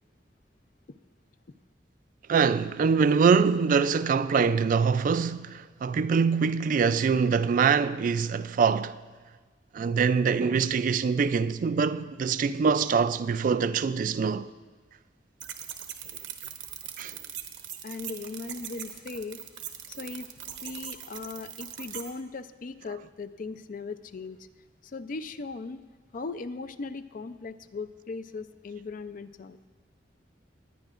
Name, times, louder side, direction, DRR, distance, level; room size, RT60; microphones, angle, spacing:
voice 1, 2.3-9.0 9.7-14.5 17.0-17.1, right 5 dB, 50° right, 0.3 m, -24 dB
sound 1, 15.4-22.1, right 10 dB, 85° right, 0.9 m, -41 dB
voice 2, 17.8-19.4 19.9-20.3 20.6-24.5 24.8-25.8 26.1-29.6, left 4 dB, 50° left, 0.4 m, -38 dB
19.5 x 9.8 x 2.5 m
head